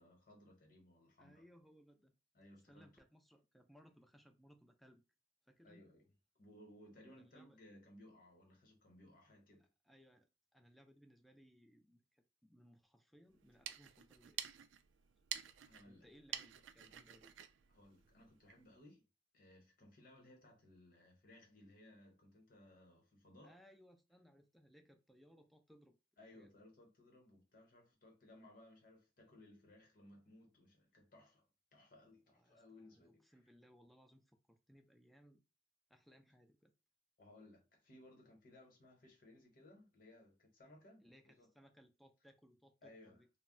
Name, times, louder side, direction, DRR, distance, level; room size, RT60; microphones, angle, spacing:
voice 1, 0.0-1.4 2.3-2.9 5.6-6.0 6.3-9.7 15.6-16.1 17.7-19.0 19.3-23.6 26.2-31.5 31.7-33.4 37.2-41.5 42.8-43.2, left 1 dB, 50° left, 0.9 m, -62 dB
voice 2, 1.2-2.1 2.7-5.1 5.5-5.9 7.0-7.6 9.8-14.4 15.8-17.3 23.4-26.0 26.3-26.5 32.3-35.4 35.9-36.7 41.0-43.3, equal, ahead, 0.3 m, -65 dB
sound 1, 13.4-18.7, right 10 dB, 85° right, 0.3 m, -50 dB
2.2 x 2.1 x 3.6 m
head